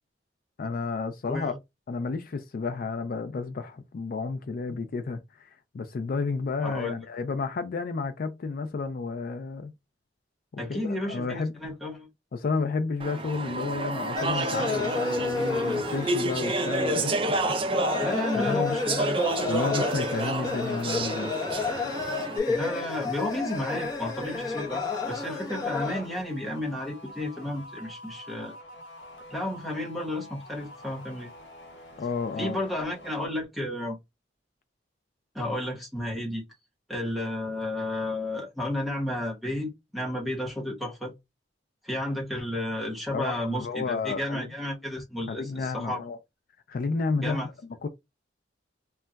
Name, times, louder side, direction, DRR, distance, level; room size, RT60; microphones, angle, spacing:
voice 1, 0.6-1.6 1.9-9.7 10.5-11.5 12.3-18.0 18.4-18.8 19.4-21.3 32.0-32.6 43.1-44.5 45.3-46.2 46.7-47.4 47.8-47.9, left 4 dB, 50° left, 0.4 m, -31 dB
voice 2, 6.6-6.9 10.6-12.1 18.0-19.4 22.5-28.5 29.3-31.3 32.4-34.0 35.3-36.4 36.9-41.1 41.8-46.0 47.2-47.5, left 1 dB, ahead, 1.0 m, -32 dB
Speech / Chatter, 13.0-22.4, right 2 dB, 30° right, 0.4 m, -30 dB
sound 1, 14.1-26.2, left 4 dB, 20° left, 0.7 m, -31 dB
sound 2, 18.6-33.3, left 1 dB, 90° left, 1.0 m, -47 dB
2.2 x 2.2 x 3.8 m
head